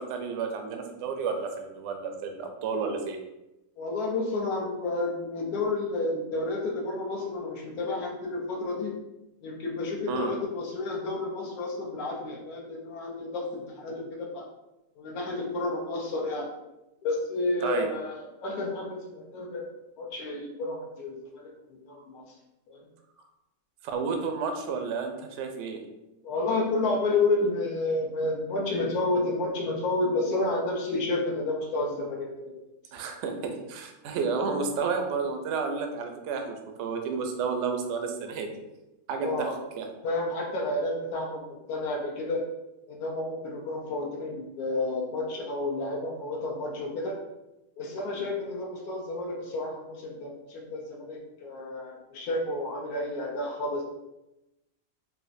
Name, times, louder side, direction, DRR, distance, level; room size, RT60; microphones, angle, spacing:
voice 1, 0.0-3.2 10.1-10.3 17.6-17.9 23.8-25.8 32.9-38.5 39.1-39.5 39.8-39.9, right 5 dB, 70° right, 5 dB, 0.7 m, -31 dB
voice 2, 3.8-8.9 9.4-14.4 15.0-16.5 17.0-19.7 20.0-21.5 21.9-22.4 22.7-22.8 26.2-32.5 39.2-39.6 40.0-42.4 42.9-47.2 47.8-53.8, left 2 dB, 70° left, -1 dB, 1.2 m, -30 dB
4.8 x 2.2 x 2.5 m, 0.95 s
omnidirectional pair, 1.7 m